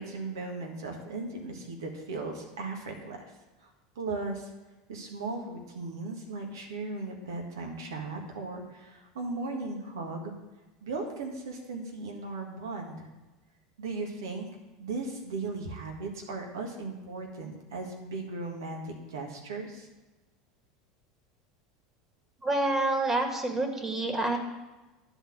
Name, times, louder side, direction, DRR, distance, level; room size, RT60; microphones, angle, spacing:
voice 1, 0.0-3.3 3.6-4.5 4.9-10.3 10.8-13.1 13.8-14.5 14.8-19.9, right 3 dB, 85° right, 2 dB, 1.7 m, -37 dB
voice 2, 22.4-24.4, right 2 dB, 20° right, 4 dB, 1.8 m, -27 dB
11.0 x 4.1 x 7.4 m, 1.1 s
hypercardioid pair, 90°, 2 cm